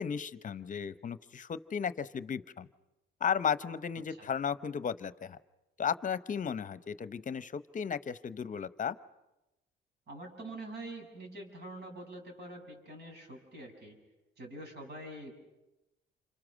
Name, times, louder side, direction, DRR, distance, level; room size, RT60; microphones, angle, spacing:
voice 1, 0.0-2.7 3.2-5.4 5.8-9.0, left 7 dB, 40° left, 15 dB, 0.9 m, -34 dB
voice 2, 10.1-14.0 14.4-15.3, right 1 dB, 55° right, 2 dB, 6.6 m, -45 dB
28.5 x 26.0 x 6.3 m, 0.99 s
cardioid pair, 90°, 20 cm